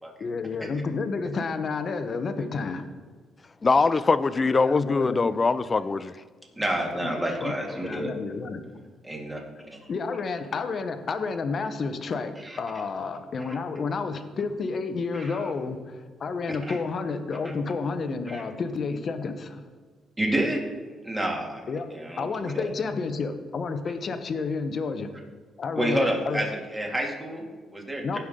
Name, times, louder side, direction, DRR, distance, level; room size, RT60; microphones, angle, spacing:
voice 1, 0.2-2.9 4.5-5.3 7.0-7.1 7.4-8.8 9.9-19.6 21.7-21.9 22.2-25.1 25.6-26.4 28.0-28.2, left 4 dB, 50° left, 0.9 m, -30 dB
voice 2, 3.6-6.1, left 4 dB, 30° left, 0.4 m, -22 dB
voice 3, 6.6-8.1 9.0-9.4 12.4-12.6 13.5-13.6 15.1-15.5 16.5-16.8 18.3-18.4 20.2-20.6 21.0-21.6 21.9-22.6 25.8-26.5 26.7-28.2, right 1 dB, 15° right, 2.3 m, -29 dB
16.0 x 5.7 x 3.8 m
cardioid pair, 90°, 0 cm